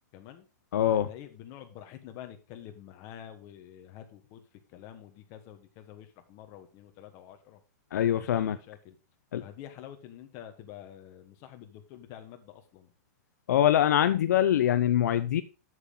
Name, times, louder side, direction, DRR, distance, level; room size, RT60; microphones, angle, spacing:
voice 1, 0.1-0.5 0.9-4.4 4.7-7.6 8.1-8.9 9.4-12.9, left 11 dB, 35° left, 6 dB, 1.4 m, -47 dB
voice 2, 0.7-1.1 7.9-8.6 9.3-9.4 13.5-15.4, left 11 dB, 75° left, 12 dB, 0.6 m, -24 dB
8.0 x 7.5 x 3.7 m, 0.31 s
supercardioid pair, 160°, 9 cm